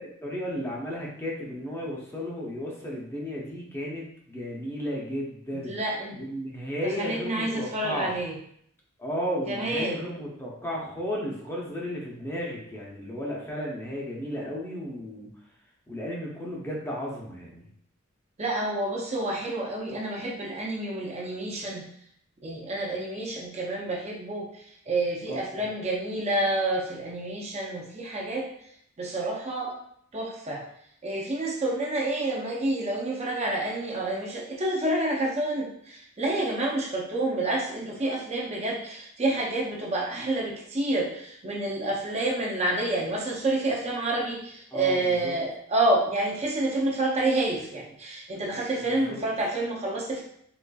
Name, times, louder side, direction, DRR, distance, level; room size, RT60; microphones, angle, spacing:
voice 1, 0.0-5.7 6.2-8.2 9.0-15.3 15.9-17.6 25.3-25.4 44.7-45.3 48.8-49.2, equal, 10° left, -4 dB, 0.6 m, -34 dB
voice 2, 5.5-6.2 7.0-8.3 9.5-10.0 18.4-21.9 22.4-28.5 29.0-29.7 30.1-30.6 31.0-50.2, right 2 dB, 30° right, -3 dB, 0.5 m, -28 dB
3.9 x 3.0 x 2.3 m, 0.67 s
head